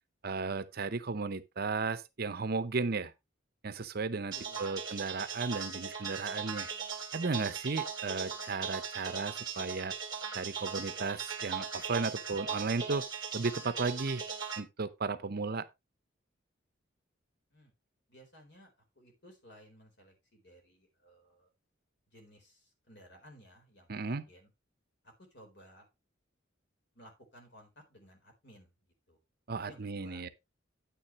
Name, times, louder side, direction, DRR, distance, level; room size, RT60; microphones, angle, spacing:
voice 1, 0.2-3.1 3.6-6.7 7.1-9.9 10.3-13.0 13.3-14.2 14.6-15.7 23.9-24.2 29.5-30.3, right 4 dB, 55° right, 0.8 m, -35 dB
voice 2, 4.1-4.6 17.5-17.7 18.1-21.5 22.1-24.5 25.0-25.9 26.9-28.7 29.1-29.2 29.7-30.2, equal, 60° left, 4.2 m, -57 dB
sound 1, 4.3-14.6, right 6 dB, 25° right, 2.4 m, -39 dB
9.5 x 9.4 x 3.1 m
head